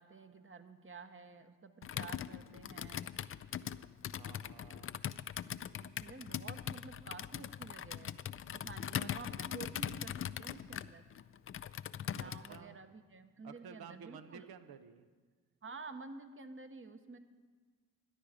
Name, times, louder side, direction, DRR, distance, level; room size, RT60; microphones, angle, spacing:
voice 1, 0.0-3.1 5.8-8.2 8.5-11.0 12.1-14.5 15.6-17.2, right 4 dB, 30° right, 9 dB, 1.1 m, -51 dB
Computer keyboard, 1.8-12.6, left 9 dB, 35° left, 0.4 m, -41 dB
voice 2, 4.1-5.0 12.2-12.8 13.4-15.1, right 7 dB, 65° right, 11 dB, 0.9 m, -53 dB
13.0 x 10.5 x 5.0 m, 1.5 s
supercardioid pair, 55°, 40 cm